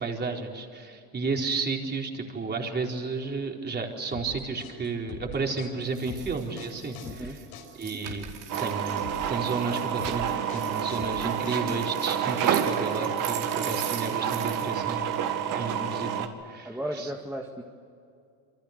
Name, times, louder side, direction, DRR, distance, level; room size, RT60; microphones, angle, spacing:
voice 1, 0.0-7.3 7.8-8.2 8.6-15.2 15.5-17.1, right 4 dB, 25° right, 1 dB, 4.4 m, -32 dB
sound 1, 4.1-12.0, left 4 dB, 80° left, 5.9 m, -42 dB
sound 2, 5.9-14.7 15.1-15.2, right 10 dB, 65° right, 5.2 m, -42 dB
voice 2, 7.0-7.4 16.6-17.6, right 1 dB, 5° right, 0 dB, 2.0 m, -35 dB
sound 3, 8.5-16.3, right 9 dB, 50° right, 2.4 m, -29 dB
28.0 x 24.5 x 6.8 m, 2.4 s
supercardioid pair, 115°, 41 cm